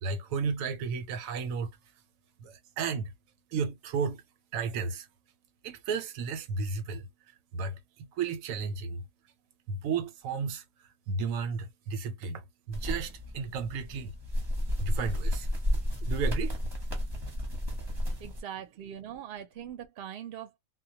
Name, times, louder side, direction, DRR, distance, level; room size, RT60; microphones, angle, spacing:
voice 1, 0.0-1.7 2.4-3.1 3.5-4.2 4.5-5.1 5.6-7.1 7.5-9.0 9.7-10.6 11.1-14.1 14.8-15.5 16.0-16.6, right 5 dB, 85° right, 1.0 m, -33 dB
sound 1, 12.7-18.4, equal, 25° right, 0.7 m, -32 dB
voice 2, 18.2-20.6, right 10 dB, 60° right, 0.7 m, -41 dB
2.2 x 2.1 x 2.6 m
omnidirectional pair, 1.4 m